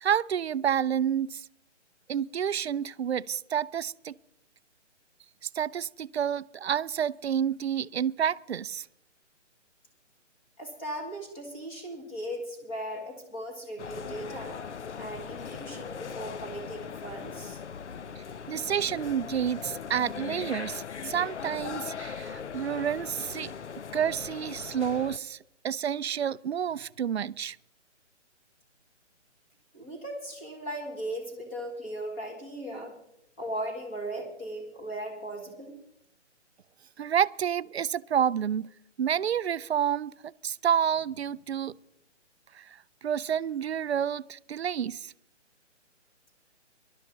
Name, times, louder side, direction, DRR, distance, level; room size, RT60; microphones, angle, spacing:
voice 1, 0.0-1.5 2.1-4.1 5.5-8.9 18.1-23.5 23.9-25.4 25.6-27.6 37.0-38.7 39.0-41.7 42.5-42.8 43.0-45.1, right 8 dB, 60° right, 0.5 m, -29 dB
voice 2, 10.6-14.6 15.0-17.6 29.7-32.9 33.4-35.8, right 1 dB, 10° left, 1.5 m, -38 dB
sound 1, 13.8-25.2, left 6 dB, 70° left, 0.7 m, -39 dB
19.5 x 12.0 x 3.9 m
hypercardioid pair, 175°, 36 cm